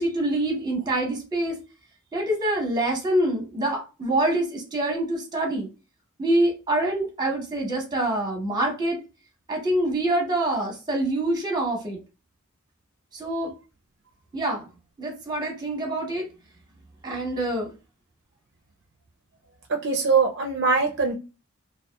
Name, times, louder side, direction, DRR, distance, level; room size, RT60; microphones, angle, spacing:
voice 1, 0.0-1.6 2.1-5.7 6.2-9.0 9.5-12.0 13.1-13.5 14.3-14.6 15.0-16.3 17.0-17.7, right 1 dB, 20° right, 1 dB, 0.9 m, -25 dB
voice 2, 19.7-21.1, right 4 dB, 55° right, 2 dB, 0.4 m, -22 dB
2.7 x 2.3 x 2.2 m, 0.31 s
head